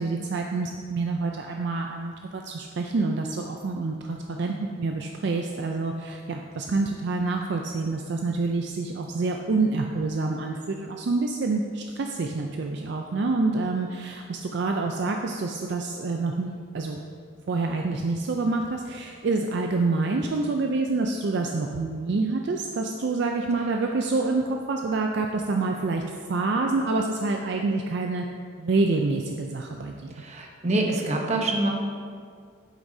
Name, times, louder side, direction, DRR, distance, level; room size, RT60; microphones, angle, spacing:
voice 1, 0.0-17.0 17.5-26.0 26.3-28.2 28.6-30.2, right 3 dB, 55° right, 2 dB, 0.4 m, -27 dB
voice 2, 30.1-31.7, right 2 dB, 35° right, 1 dB, 0.9 m, -26 dB
9.0 x 7.9 x 2.7 m, 2.1 s
head